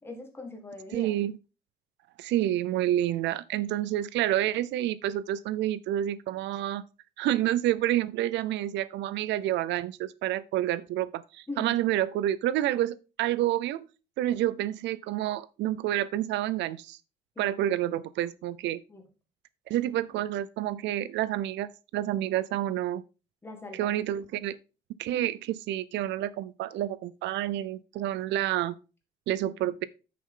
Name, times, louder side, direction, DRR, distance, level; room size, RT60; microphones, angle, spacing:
voice 1, 0.0-1.1 11.5-11.8 17.4-17.5 18.9-19.0 23.4-23.9, left 2 dB, 15° left, 1.8 m, -41 dB
voice 2, 0.9-1.4 2.2-6.8 7.2-13.9 14.2-17.0 17.4-18.8 19.7-23.0 23.7-24.6 25.0-28.8 29.3-29.8, right 13 dB, 85° right, 0.6 m, -29 dB
8.7 x 6.6 x 3.8 m
cardioid pair, 165°, 18 cm